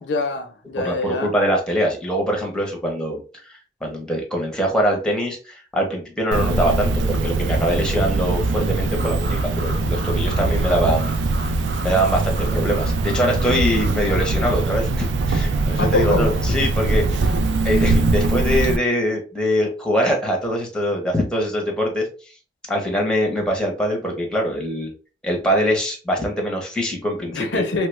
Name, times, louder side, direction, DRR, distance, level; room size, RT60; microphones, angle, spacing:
voice 1, 0.0-1.3 15.8-16.3 27.3-27.9, left 3 dB, 80° left, 0.6 m, -24 dB
voice 2, 0.8-3.2 3.5-11.2 11.8-17.4 17.6-22.1 22.7-24.9 25.2-27.6, equal, 5° left, 0.7 m, -23 dB
Cricket, 6.3-18.8, right 3 dB, 80° right, 0.3 m, -22 dB
sound 1, 9.0-14.5, right 1 dB, 55° right, 0.7 m, -37 dB
3.2 x 2.2 x 3.1 m
head